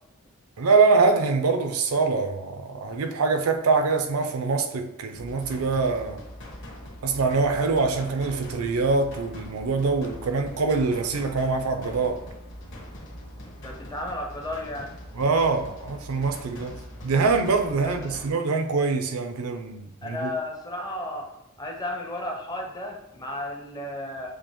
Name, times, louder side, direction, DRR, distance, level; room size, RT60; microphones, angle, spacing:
voice 1, 0.6-6.2 7.0-12.2 15.2-16.8 17.0-20.3, right 4 dB, 90° right, 0.5 m, -24 dB
sound 1, 5.1-18.3, equal, 55° left, 1.1 m, -42 dB
voice 2, 13.6-15.0 17.8-18.2 20.0-21.3 21.6-24.4, left 1 dB, 20° left, 0.5 m, -33 dB
7.3 x 2.4 x 3.0 m
head